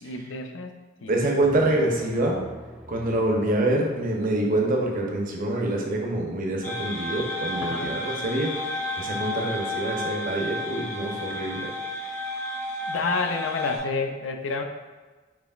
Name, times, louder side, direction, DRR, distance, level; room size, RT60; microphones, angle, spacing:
voice 1, 0.0-1.1 7.6-7.9 12.9-14.6, left 4 dB, 75° left, 5 dB, 0.5 m, -29 dB
voice 2, 1.1-2.4 2.9-8.5 9.0-11.7, right 1 dB, 45° right, 0 dB, 0.8 m, -26 dB
sound 1, 1.4-5.3 7.1-7.6 7.9-8.0 8.3-8.9, equal, 5° right, 0.4 m, -46 dB
sound 2, 6.6-13.8, left 1 dB, 15° left, 0.8 m, -32 dB
7.0 x 3.1 x 2.4 m, 1.3 s
head